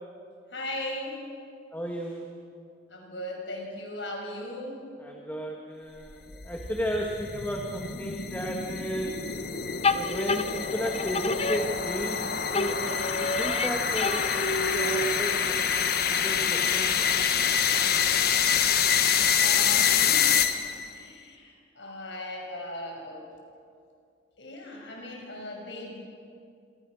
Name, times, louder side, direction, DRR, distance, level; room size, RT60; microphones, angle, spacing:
voice 1, 0.5-1.2 2.9-4.8 19.3-20.3 20.9-23.3 24.4-25.9, left 1 dB, 80° left, 1 dB, 6.3 m, -38 dB
voice 2, 1.7-2.3 5.0-9.3 9.9-17.1, equal, 10° left, 0 dB, 2.0 m, -34 dB
sound 1, 6.1-20.9, left 7 dB, 60° left, 1.4 m, -26 dB
sound 2, 9.8-12.2 12.5-15.4, left 3 dB, 35° left, 0.8 m, -29 dB
27.0 x 26.5 x 6.4 m, 2.3 s
head